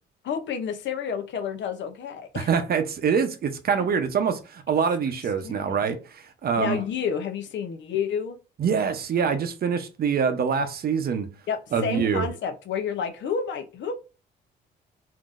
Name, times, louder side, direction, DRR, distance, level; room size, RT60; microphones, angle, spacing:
voice 1, 0.2-2.5 5.4-5.8 6.6-8.4 11.5-13.9, left 7 dB, 65° left, 0.7 m, -30 dB
voice 2, 2.3-6.8 8.6-11.3 11.7-12.3, right 6 dB, 50° right, 0.7 m, -25 dB
3.8 x 2.6 x 2.5 m
cardioid pair, 90°, 20 cm